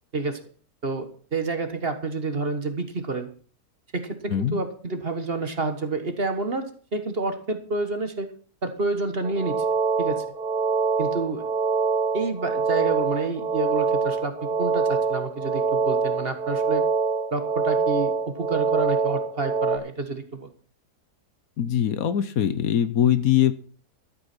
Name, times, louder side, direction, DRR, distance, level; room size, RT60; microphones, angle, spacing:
voice 1, 0.8-3.3 3.9-8.3 8.6-9.6 10.0-10.2 11.0-11.4 12.1-16.8 17.3-18.1 18.4-20.5, right 3 dB, 40° right, 8 dB, 1.7 m, -29 dB
voice 2, 4.3-4.6 21.6-23.5, left 10 dB, 65° left, 13 dB, 1.3 m, -22 dB
sound 1, 9.2-19.8, right 4 dB, 80° right, 1.8 m, -25 dB
13.0 x 8.4 x 6.1 m, 0.42 s
omnidirectional pair, 1.7 m